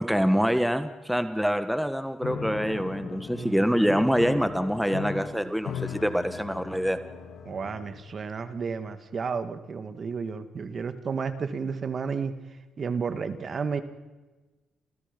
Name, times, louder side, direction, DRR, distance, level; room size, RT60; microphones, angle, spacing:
voice 1, 0.0-7.0, equal, ahead, 9 dB, 1.6 m, -25 dB
Piano, 2.2-8.1, left 7 dB, 75° left, 3.4 m, -38 dB
voice 2, 3.3-3.9 7.4-12.3 12.8-13.8, right 5 dB, 45° right, 10 dB, 2.0 m, -32 dB
29.5 x 28.0 x 5.4 m, 1.2 s
cardioid pair, 90°, 0 cm